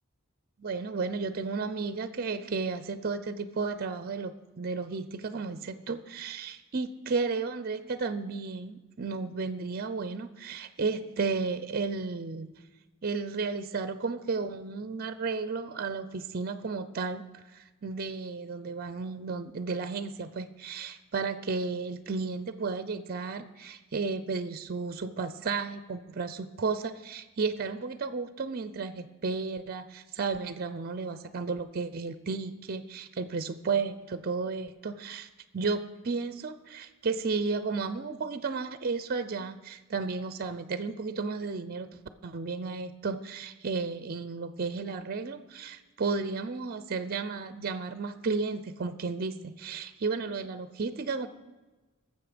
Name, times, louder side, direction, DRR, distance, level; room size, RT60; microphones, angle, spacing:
voice 1, 0.6-12.5 13.0-35.3 35.5-41.9 42.2-51.3, right 4 dB, 45° right, 12 dB, 0.5 m, -33 dB
18.0 x 7.1 x 5.1 m, 1.2 s
head